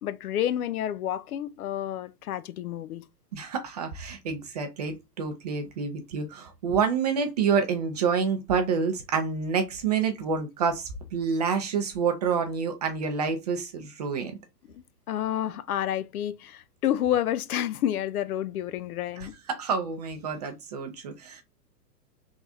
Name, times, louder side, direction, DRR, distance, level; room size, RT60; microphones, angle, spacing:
voice 1, 0.0-3.0 14.7-19.3, left 11 dB, 65° left, 0.5 m, -29 dB
voice 2, 3.3-14.3 19.2-21.4, right 5 dB, 25° right, 0.4 m, -28 dB
3.5 x 2.4 x 4.0 m
hypercardioid pair, 120°, 50 cm